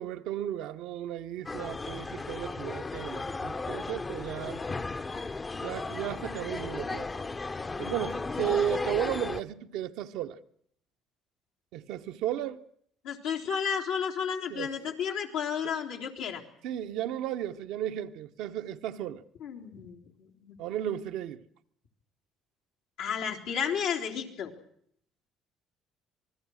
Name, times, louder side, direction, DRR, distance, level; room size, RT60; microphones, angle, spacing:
voice 1, 0.0-4.6 5.6-7.1 7.7-10.4 11.7-12.6 14.5-14.7 16.6-19.2 20.6-21.4, right 11 dB, 75° right, 1.0 m, -34 dB
sound 1, 1.5-9.4, left 3 dB, 25° left, 1.0 m, -35 dB
voice 2, 13.0-16.4 19.4-20.6 23.0-24.5, left 7 dB, 80° left, 3.7 m, -32 dB
27.0 x 20.0 x 6.4 m
supercardioid pair, 70°, 0 cm